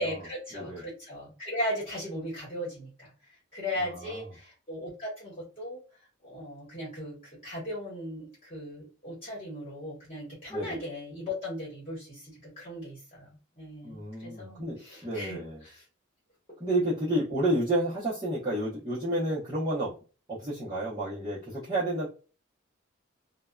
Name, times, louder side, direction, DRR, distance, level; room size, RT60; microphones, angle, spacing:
voice 1, 0.0-3.1 3.5-5.8 6.2-15.8, left 1 dB, 30° left, -6 dB, 1.1 m, -37 dB
voice 2, 0.5-0.8 3.8-4.2 10.5-10.8 13.8-15.6 16.6-19.9 20.3-22.1, right 1 dB, 20° right, -9 dB, 0.7 m, -30 dB
2.6 x 2.1 x 2.2 m, 0.34 s
head